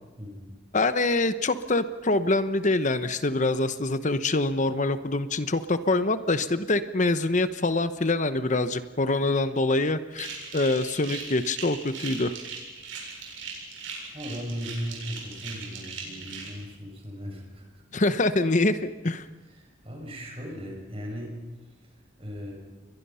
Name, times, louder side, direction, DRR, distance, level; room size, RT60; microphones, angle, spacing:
voice 1, 0.2-0.6 14.1-17.8 19.5-21.4 22.2-22.5, equal, 30° right, 1 dB, 6.3 m, -37 dB
voice 2, 0.7-12.3 17.9-19.2, left 2 dB, 40° left, 12 dB, 1.0 m, -25 dB
sound 1, 10.1-16.5, right 5 dB, 80° right, 7.7 m, -39 dB
29.5 x 22.5 x 5.7 m, 1.2 s
head